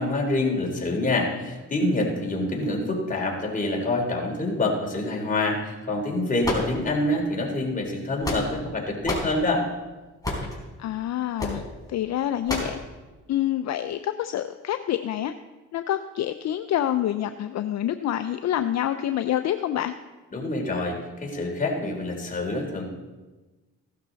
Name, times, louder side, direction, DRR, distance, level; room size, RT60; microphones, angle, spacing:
voice 1, 0.0-9.7 20.3-22.8, left 2 dB, 25° left, -1 dB, 3.6 m, -26 dB
sound 1, 6.4-7.2 7.9-8.7 9.0-9.4 10.2-10.6 11.4-11.6 12.5-12.8, left 2 dB, 10° left, 4.1 m, -29 dB
voice 2, 10.8-11.6 11.9-12.8 13.3-15.3 15.7-19.9, left 11 dB, 60° left, 9 dB, 0.6 m, -27 dB
15.5 x 12.0 x 4.0 m, 1.2 s
cardioid pair, 90°, 30 cm